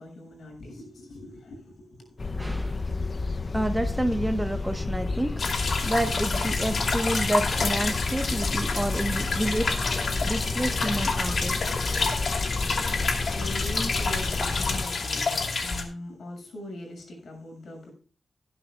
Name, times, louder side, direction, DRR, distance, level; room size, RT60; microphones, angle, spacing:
voice 1, 0.0-2.2 12.8-17.9, left 1 dB, 75° left, 7.1 m, -41 dB
sound 1, 2.2-14.8, left 3 dB, 35° left, 0.5 m, -31 dB
voice 2, 2.4-2.8 3.5-5.5 5.8-9.8 10.2-11.6, right 1 dB, 10° right, 1.0 m, -29 dB
sound 2, 5.4-15.8, left 4 dB, 60° left, 2.6 m, -29 dB
19.0 x 11.0 x 2.3 m
wide cardioid pair, 125°, 0 cm